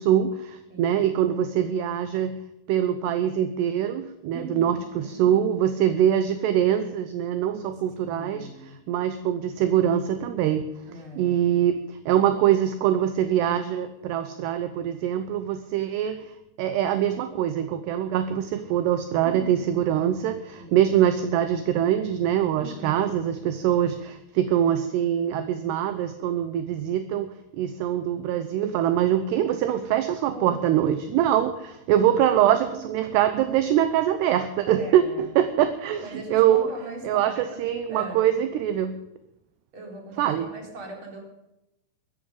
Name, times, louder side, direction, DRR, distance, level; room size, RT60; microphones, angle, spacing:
voice 1, 0.0-2.4 2.7-10.6 11.2-16.3 16.6-36.1 36.3-36.7 37.0-37.3 37.6-38.9 40.2-40.5, right 10 dB, 75° right, 10 dB, 2.6 m, -23 dB
voice 2, 0.7-1.2 4.3-5.4 8.1-8.8 10.8-11.6 19.2-19.7 20.5-20.9 22.6-23.4 30.3-30.8 32.4-33.1 34.6-35.3 36.0-38.2 39.7-41.2, right 2 dB, 30° right, 1 dB, 4.1 m, -40 dB
16.0 x 14.0 x 5.4 m, 0.87 s
omnidirectional pair, 5.6 m